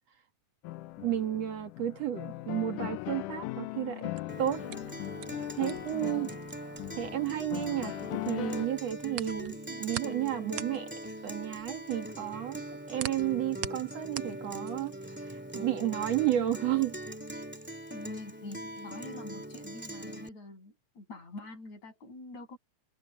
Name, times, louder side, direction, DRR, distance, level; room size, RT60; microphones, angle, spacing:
sound 1, 0.6-8.7, left 18 dB, 90° left, 2.3 m, -39 dB
voice 1, 1.0-4.1 4.4-4.7 5.5-6.3 7.0-7.9 8.2-10.9 11.2-12.6 12.9-15.0 15.5-17.0, right 12 dB, 60° right, 2.6 m, -32 dB
sound 2, 4.0-8.1 8.4-15.0, right 12 dB, 80° right, 1.3 m, -42 dB
Guitar, 4.3-20.3, right 1 dB, 5° right, 1.7 m, -42 dB
voice 2, 5.9-6.4 17.9-22.6, left 2 dB, 60° left, 8.1 m, -45 dB
omnidirectional pair, 3.5 m